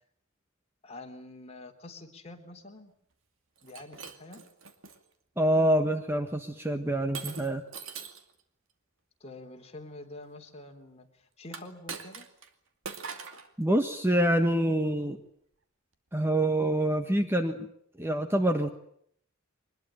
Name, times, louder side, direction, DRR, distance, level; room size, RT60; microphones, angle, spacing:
voice 1, 0.8-2.9 3.6-4.4 9.2-12.3, left 2 dB, 30° left, 2 dB, 3.6 m, -46 dB
Shatter, 3.6-5.0 5.6-6.0 7.1-8.3 11.5-12.5 12.8-13.5, right 5 dB, 65° right, 2.4 m, -42 dB
voice 2, 5.4-7.6 13.6-15.2 16.1-17.6 18.0-18.7, right 1 dB, 10° right, 7 dB, 1.3 m, -26 dB
24.0 x 21.0 x 9.0 m, 0.68 s
head